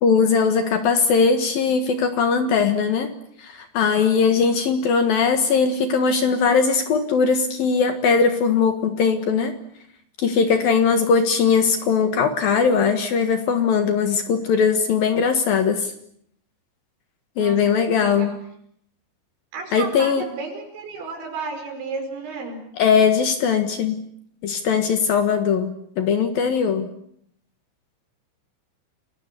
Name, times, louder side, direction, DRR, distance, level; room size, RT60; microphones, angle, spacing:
voice 1, 0.0-3.1 3.4-9.5 10.2-15.9 17.4-18.3 19.7-20.2 22.8-24.0 24.4-26.9, left 5 dB, 60° left, 8 dB, 2.9 m, -20 dB
voice 2, 17.4-18.4 19.5-22.6, right 3 dB, 70° right, 4 dB, 7.5 m, -33 dB
29.0 x 21.5 x 8.3 m, 0.70 s
omnidirectional pair, 5.4 m